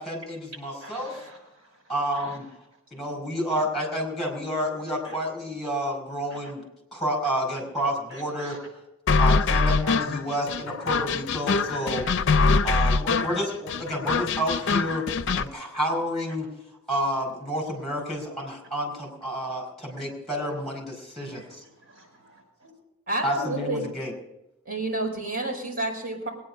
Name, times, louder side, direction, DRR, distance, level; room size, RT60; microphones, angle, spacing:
voice 1, 0.0-1.1 1.9-2.4 2.9-6.6 6.9-8.5 9.2-12.0 12.6-15.0 15.3-16.5 16.9-21.6 23.2-24.1, equal, ahead, 1 dB, 4.7 m, -29 dB
voice 2, 0.8-1.8 2.1-2.4 5.0-5.2 6.3-6.5 8.1-8.6 11.8-12.1 14.5-14.7 21.2-22.7, right 1 dB, 75° right, 1 dB, 6.4 m, -47 dB
sound 1, 9.1-15.5, left 4 dB, 60° left, 0.5 m, -23 dB
voice 3, 23.1-23.9 24.7-26.3, right 2 dB, 45° right, -1 dB, 5.4 m, -29 dB
21.0 x 9.7 x 5.4 m, 0.90 s
head